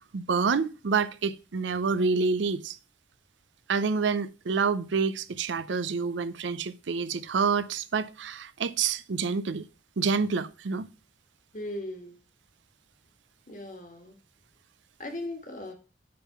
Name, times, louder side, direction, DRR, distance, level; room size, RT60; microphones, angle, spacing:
voice 1, 0.0-2.8 3.7-9.7 10.0-10.9, right 5 dB, 85° right, 0.5 m, -28 dB
voice 2, 11.5-12.2 13.5-14.2 15.0-15.7, left 1 dB, 45° left, 1.6 m, -38 dB
8.5 x 3.7 x 5.8 m
head